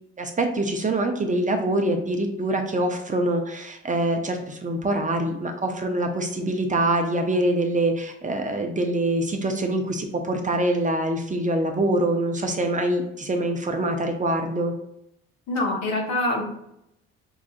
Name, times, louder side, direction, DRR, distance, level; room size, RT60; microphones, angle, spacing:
voice 1, 0.2-14.7, right 1 dB, 25° right, 4 dB, 0.6 m, -24 dB
voice 2, 15.5-16.4, left 2 dB, 65° left, -2 dB, 1.2 m, -24 dB
4.7 x 2.4 x 2.4 m, 0.79 s
supercardioid pair, 65°, 29 cm